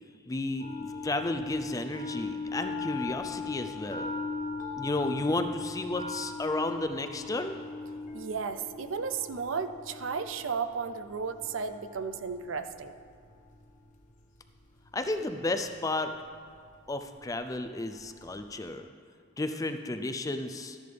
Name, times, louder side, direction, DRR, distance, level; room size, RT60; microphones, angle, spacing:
voice 1, 0.3-4.1 4.8-7.6 14.9-16.1 16.9-18.9 19.4-20.8, left 2 dB, 15° left, 8 dB, 0.4 m, -32 dB
sound 1, 0.6-18.6, left 4 dB, 40° left, 1.2 m, -40 dB
voice 2, 8.1-12.9, right 5 dB, 70° right, 9 dB, 0.5 m, -34 dB
12.5 x 10.5 x 3.4 m, 2.1 s
head